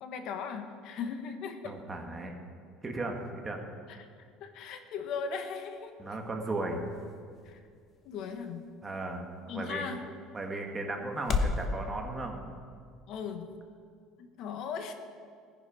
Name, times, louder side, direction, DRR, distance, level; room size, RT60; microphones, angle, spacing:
voice 1, 0.0-1.8 3.9-4.1 4.4-6.0 7.4-7.6 8.0-8.7 9.5-10.1 13.1-13.6 14.2-14.9, left 6 dB, 50° left, 6 dB, 1.4 m, -38 dB
voice 2, 1.6-2.3 2.8-3.6 6.0-6.8 8.8-9.8 10.3-12.4, right 2 dB, 15° right, 2 dB, 1.5 m, -36 dB
sound 1, 5.4-11.7, left 5 dB, 30° left, 1.1 m, -38 dB
18.0 x 10.5 x 4.9 m, 2.1 s
cardioid pair, 155°, 0 cm